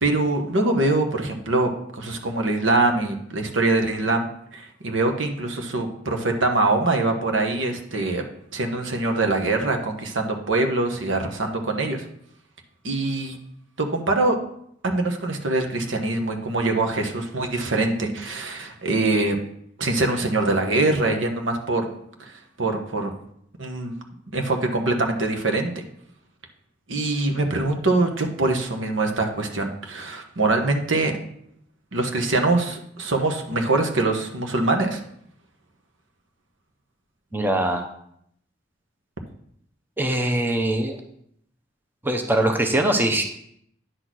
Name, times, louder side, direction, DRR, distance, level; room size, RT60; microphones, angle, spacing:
voice 1, 0.0-4.3 4.5-8.2 8.5-12.0 12.8-13.4 13.8-14.4 14.8-19.4 19.8-21.9 22.2-22.3 22.6-23.1 23.6-23.9 24.3-25.7 26.9-31.1 31.9-35.0, right 2 dB, 80° right, 3 dB, 1.2 m, -23 dB
voice 2, 37.3-37.9 40.0-41.0 42.0-43.2, right 1 dB, 10° right, 4 dB, 0.7 m, -22 dB
9.7 x 4.2 x 6.2 m, 0.70 s
head